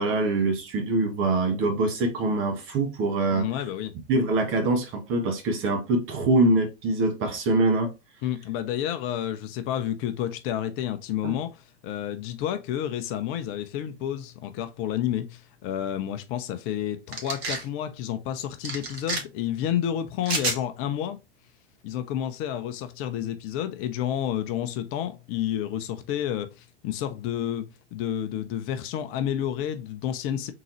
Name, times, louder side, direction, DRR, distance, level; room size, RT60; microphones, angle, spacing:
voice 1, 0.0-3.5 4.1-7.9 11.2-11.3, right 2 dB, 40° right, 1.6 m, -24 dB
voice 2, 3.3-3.9 8.2-21.2 21.8-27.6 27.9-30.5, left 10 dB, 40° left, 0.7 m, -30 dB
sound 1, 17.1-17.6 18.6-19.2 20.2-20.6, right 3 dB, 75° right, 1.6 m, -29 dB
3.8 x 3.8 x 3.0 m
hypercardioid pair, 95°, 31 cm